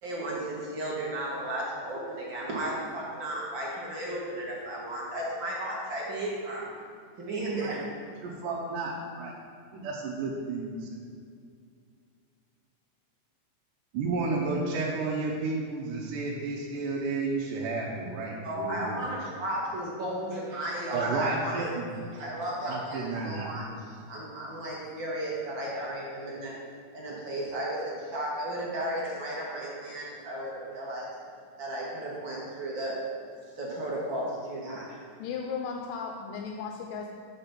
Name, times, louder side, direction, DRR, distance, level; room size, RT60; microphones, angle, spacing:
voice 1, 0.0-6.7 7.2-7.8 18.4-21.7 22.1-26.5 26.9-31.1 31.6-33.0 33.6-35.0, right 1 dB, 50° right, -5 dB, 1.6 m, -34 dB
voice 2, 8.2-9.3 9.8-10.9 13.9-19.0 20.9-22.0 22.6-23.5, right 3 dB, 80° right, -3 dB, 2.4 m, -32 dB
voice 3, 35.2-37.1, left 5 dB, 90° left, 1 dB, 2.3 m, -35 dB
6.9 x 5.4 x 5.8 m, 2.2 s
omnidirectional pair, 3.8 m